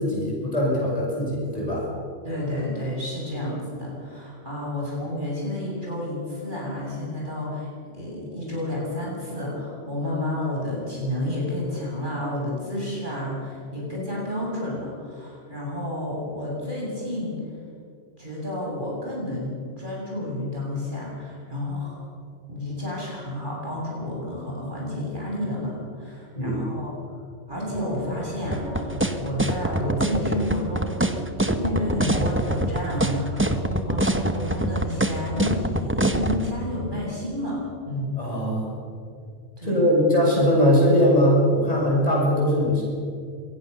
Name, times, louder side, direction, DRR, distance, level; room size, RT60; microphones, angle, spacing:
voice 1, 0.0-1.9 26.3-26.6 38.1-38.8 39.6-42.8, equal, 35° left, -4 dB, 8.1 m, -21 dB
voice 2, 2.2-7.7 7.9-17.4 18.2-22.0 22.5-26.9 27.5-30.9 31.6-37.6 37.9-38.1 39.6-39.8, left 1 dB, 45° right, -4 dB, 8.0 m, -30 dB
sound 1, 27.5-34.7, right 1 dB, 80° right, 5.6 m, -37 dB
sound 2, 28.5-36.4, right 1 dB, 10° right, 1.1 m, -24 dB
26.5 x 19.0 x 7.0 m, 2.3 s
omnidirectional pair, 1.2 m